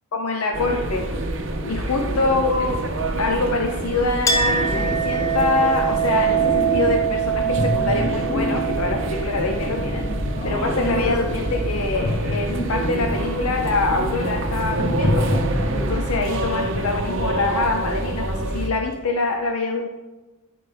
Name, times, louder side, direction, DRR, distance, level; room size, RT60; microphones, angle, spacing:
voice 1, 0.1-1.1 1.6-2.8 3.2-10.0 10.4-15.4 15.8-19.9, left 3 dB, 75° left, 3 dB, 0.7 m, -25 dB
sound 1, 0.5-18.7, right 1 dB, 55° right, 0.8 m, -27 dB
Chink clink, 4.3-11.3, right 7 dB, 15° left, 0.5 m, -25 dB
sound 2, 4.4-16.0, left 1 dB, 45° left, 0.9 m, -28 dB
12.0 x 5.1 x 3.5 m, 1.2 s
head